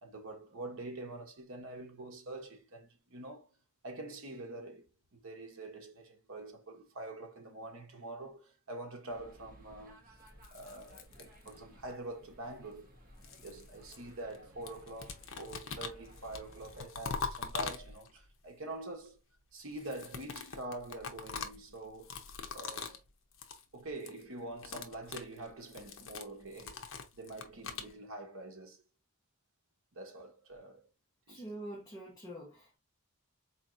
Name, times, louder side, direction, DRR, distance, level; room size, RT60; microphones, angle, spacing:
voice 1, 0.0-3.5 3.8-10.0 10.5-12.9 13.4-19.2 19.5-22.2 22.5-23.0 23.7-26.8 27.1-28.8 29.9-30.9 31.3-31.5, right 2 dB, 65° right, 0.9 m, -45 dB
sound 1, 9.1-16.8, equal, 40° right, 1.0 m, -58 dB
sound 2, 10.3-11.8 12.8-14.4 14.7-18.3 19.7-23.1 23.3-23.6 23.9-24.2 24.5-27.9, left 5 dB, 65° left, 0.7 m, -43 dB
voice 2, 31.3-32.8, right 1 dB, 15° left, 1.0 m, -45 dB
4.3 x 2.9 x 2.5 m
head